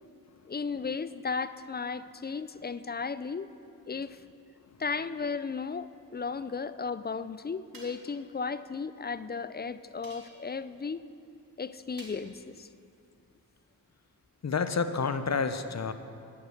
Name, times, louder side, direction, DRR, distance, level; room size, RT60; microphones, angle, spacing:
voice 1, 0.5-3.5 3.9-4.2 4.8-11.0 11.6-12.7, left 5 dB, 30° left, 14 dB, 0.4 m, -35 dB
sound 1, 7.7-8.2 10.0-10.6 12.0-12.4, right 2 dB, 70° right, 2.0 m, -52 dB
voice 2, 14.4-15.9, left 5 dB, 45° left, 10 dB, 0.8 m, -29 dB
9.9 x 9.5 x 6.5 m, 2.5 s
cardioid pair, 45°, 37 cm